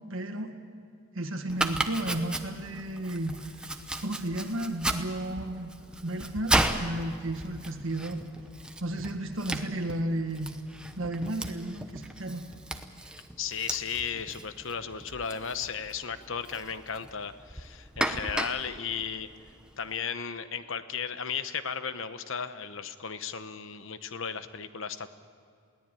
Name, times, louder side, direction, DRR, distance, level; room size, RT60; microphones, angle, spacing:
voice 1, 0.1-0.5 1.1-3.3 4.0-5.7 6.0-8.2 8.8-10.5 11.0-12.5, right 1 dB, 60° right, 5 dB, 1.8 m, -33 dB
Domestic sounds home sounds, 1.5-19.9, right 1 dB, 5° right, 0.9 m, -35 dB
voice 2, 13.4-19.3 19.8-25.1, left 7 dB, 60° left, 11 dB, 1.0 m, -35 dB
22.0 x 17.5 x 9.1 m, 2.4 s
head